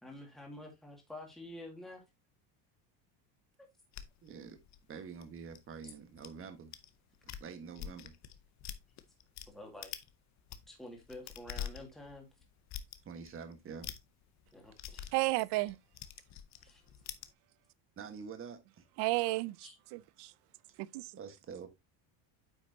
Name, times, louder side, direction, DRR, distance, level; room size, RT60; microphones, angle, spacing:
voice 1, 0.0-2.0 9.5-9.9 10.7-12.3 14.5-15.0 16.6-16.8 19.6-19.8, left 1 dB, ahead, 1.9 m, -49 dB
sound 1, 3.9-6.3 6.7-6.9 7.2-9.5 9.8-10.1 10.4-17.3, left 10 dB, 35° left, 0.7 m, -45 dB
voice 2, 4.2-4.6 4.9-6.7 7.4-8.1 13.0-13.9 18.0-18.8 21.1-21.7, right 6 dB, 25° right, 1.4 m, -46 dB
voice 3, 15.1-15.8 19.0-20.3 20.8-21.1, right 21 dB, 55° right, 0.6 m, -33 dB
9.1 x 5.7 x 2.7 m
cardioid pair, 165°, 48 cm